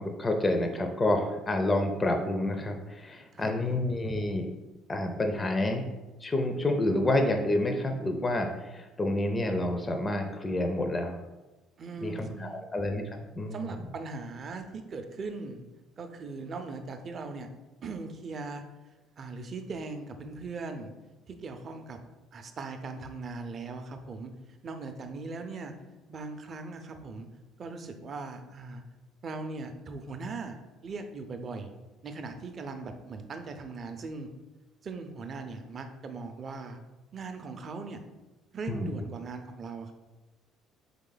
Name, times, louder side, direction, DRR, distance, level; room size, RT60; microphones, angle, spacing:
voice 1, 0.0-4.5 4.9-5.9 6.2-11.2 12.0-13.7 38.7-38.9, left 1 dB, 20° left, 4 dB, 0.4 m, -29 dB
voice 2, 3.3-4.1 11.8-12.6 13.5-15.6 16.0-17.5 17.8-18.6 19.2-20.9 21.3-22.0 22.3-24.3 24.6-25.7 26.1-27.3 27.6-28.8 29.2-31.7 32.0-34.3 34.8-36.8 37.1-38.0 38.5-39.9, right 3 dB, 40° right, 7 dB, 0.5 m, -39 dB
3.7 x 3.6 x 3.9 m, 1.1 s
cardioid pair, 120°, 0 cm